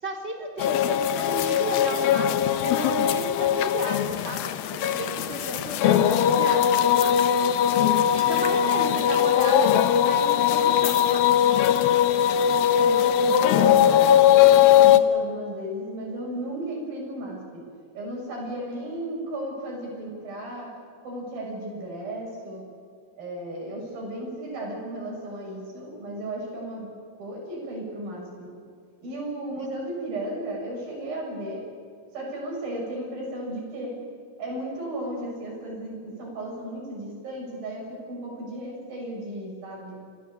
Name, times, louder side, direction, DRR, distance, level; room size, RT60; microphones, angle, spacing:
voice 1, 0.0-4.4 4.7-7.2 8.1-11.3 29.6-29.7, right 1 dB, 15° right, 2 dB, 3.6 m, -34 dB
sound 1, 0.6-15.0, left 10 dB, 85° left, 2.9 m, -20 dB
voice 2, 8.7-9.1 12.7-17.7 17.9-20.8 21.0-22.6 23.2-26.9 27.2-28.5 29.0-31.6 32.1-34.0 34.4-40.0, right 1 dB, 85° right, -1 dB, 9.0 m, -34 dB
27.5 x 19.5 x 8.6 m, 2.3 s
omnidirectional pair, 4.1 m